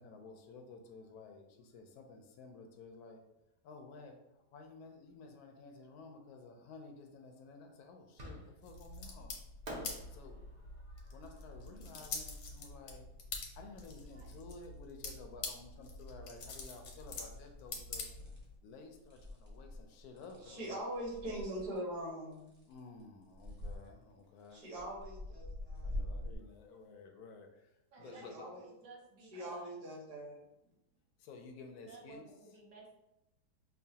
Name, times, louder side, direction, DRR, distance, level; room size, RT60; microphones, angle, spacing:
voice 1, 0.0-3.3 3.6-9.4 10.1-10.4 11.1-13.1 13.5-18.1 18.6-20.8 22.6-24.7 25.8-27.5 28.0-28.5 31.2-32.3, left 3 dB, 70° left, 4 dB, 1.0 m, -53 dB
Fireworks, 8.2-8.8 9.7-12.8, right 1 dB, 55° right, 0.4 m, -50 dB
sound 1, 8.6-18.6, left 3 dB, 90° left, 1.4 m, -46 dB
sound 2, 17.3-17.5 18.0-18.4 18.9-21.8 22.3-23.0 23.3-23.8 24.4-26.4, left 1 dB, 10° right, 0.8 m, -44 dB
voice 2, 20.4-22.5 24.5-26.0 28.0-28.6 29.3-30.4, right 1 dB, 70° right, -3 dB, 1.8 m, -42 dB
voice 3, 27.9-29.8 31.9-33.0, right 3 dB, 85° right, -1 dB, 1.6 m, -55 dB
5.4 x 2.2 x 2.7 m, 0.89 s
omnidirectional pair, 1.8 m